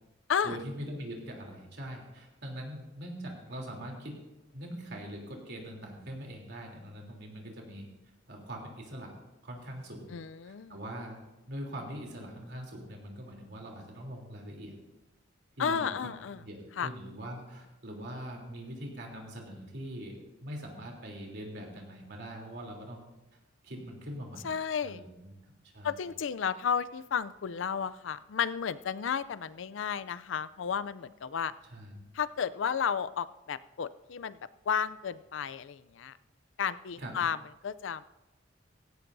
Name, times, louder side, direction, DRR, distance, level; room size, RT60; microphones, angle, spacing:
voice 1, 0.4-4.1 4.5-7.9 8.3-9.1 9.4-10.1 10.4-11.2 11.5-14.7 15.6-23.1 23.6-24.5 24.8-26.0 31.7-32.0 37.0-37.2, equal, 60° right, 0 dB, 3.2 m, -42 dB
voice 2, 10.1-10.8 15.6-16.4 16.8-16.9 24.4-25.0 25.8-31.5 32.1-34.4 34.7-36.2 36.6-37.4 37.6-38.0, left 7 dB, 70° left, 15 dB, 0.4 m, -32 dB
16.5 x 16.5 x 2.7 m, 1.0 s
head